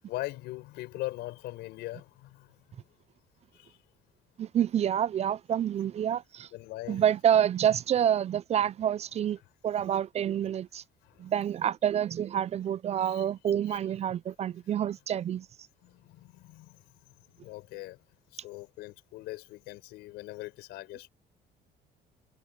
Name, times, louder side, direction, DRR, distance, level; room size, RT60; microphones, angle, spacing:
voice 1, 0.1-2.5 3.5-3.7 6.5-7.0 11.0-11.3 13.0-13.3 13.7-13.8 15.8-16.8 17.4-18.0 18.3-21.1, left 18 dB, 90° left, 5.4 m, -41 dB
voice 2, 4.4-6.5 6.9-9.4 9.6-10.8 11.2-15.5, right 9 dB, 40° right, 0.4 m, -28 dB
cardioid pair, 110°, 17 cm